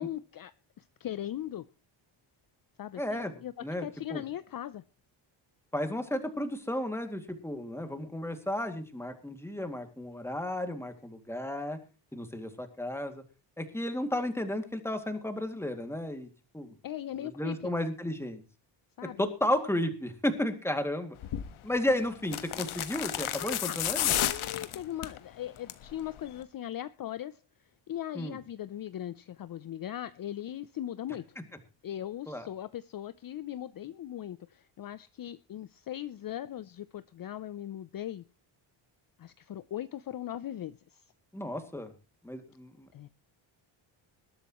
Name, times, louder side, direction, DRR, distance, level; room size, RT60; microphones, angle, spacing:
voice 1, 0.0-1.7 2.8-4.8 16.8-17.7 19.0-19.3 23.4-23.8 24.1-27.4 27.9-31.4 31.8-38.2 39.2-41.1 42.9-43.1, left 11 dB, 45° left, 0.6 m, -39 dB
voice 2, 3.0-3.3 3.6-4.2 5.7-11.8 12.1-13.2 13.6-16.3 16.5-16.7 17.4-18.4 19.2-21.2 21.6-24.1 28.1-28.4 32.3-32.4 41.3-41.9 42.2-43.1, left 1 dB, 5° left, 2.3 m, -33 dB
sound 1, 21.2-21.5 22.2-25.2 25.6-25.9 26.2-26.3, left 11 dB, 75° left, 1.4 m, -31 dB
20.5 x 12.5 x 3.0 m
cardioid pair, 120°, 50 cm